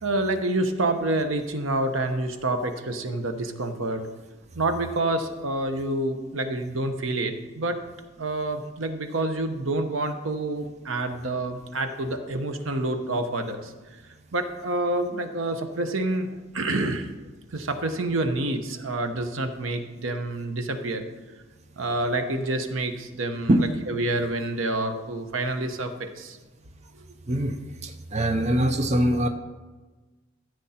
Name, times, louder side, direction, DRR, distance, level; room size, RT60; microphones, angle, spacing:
voice 1, 0.0-4.1 4.5-7.8 8.2-13.7 14.3-16.3 16.5-17.1 17.5-21.0 21.8-26.4, right 2 dB, 90° right, 7 dB, 1.0 m, -28 dB
voice 2, 27.8-29.3, right 1 dB, 35° right, 6 dB, 0.6 m, -22 dB
14.0 x 8.1 x 4.3 m, 1.3 s
head